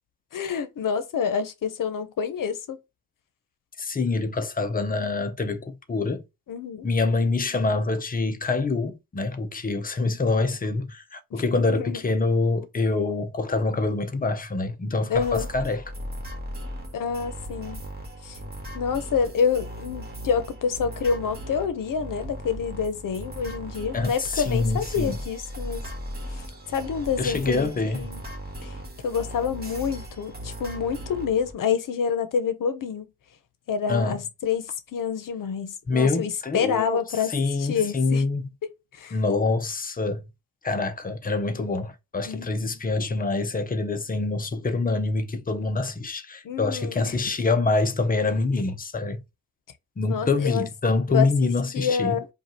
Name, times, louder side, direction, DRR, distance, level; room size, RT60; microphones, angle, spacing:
voice 1, 0.3-2.8 6.5-6.9 11.4-12.0 15.1-15.5 16.9-17.8 18.2-18.4 18.7-25.8 26.3-26.4 26.7-28.2 28.6-28.7 29.0-33.1 33.7-37.3 37.6-38.3 39.0-39.2 42.2-42.8 46.4-47.2 50.1-50.7 51.1-51.3 51.7-52.3, left 6 dB, 65° left, 0.9 m, -27 dB
voice 2, 3.8-6.2 6.8-15.8 23.9-25.2 27.2-28.1 33.9-34.2 35.9-37.0 37.3-38.5 39.1-40.2 40.6-49.2 50.0-52.2, left 3 dB, 25° left, 0.7 m, -25 dB
sound 1, 15.1-31.5, equal, 25° right, 1.8 m, -37 dB
5.1 x 2.4 x 2.9 m
wide cardioid pair, 150°, 35 cm